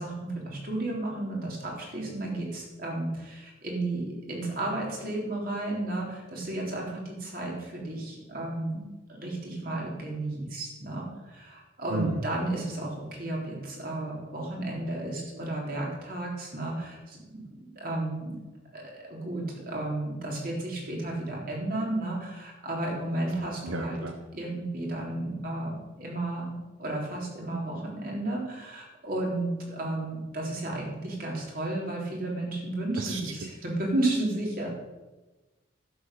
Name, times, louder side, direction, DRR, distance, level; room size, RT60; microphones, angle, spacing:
voice 1, 0.0-17.4 17.7-18.3 18.7-24.0 24.3-34.7, right 2 dB, 45° right, -2 dB, 3.5 m, -33 dB
voice 2, 11.9-12.2 23.6-24.1 33.0-33.3, right 2 dB, 90° right, 6 dB, 0.9 m, -33 dB
11.5 x 8.1 x 6.7 m, 1.1 s
head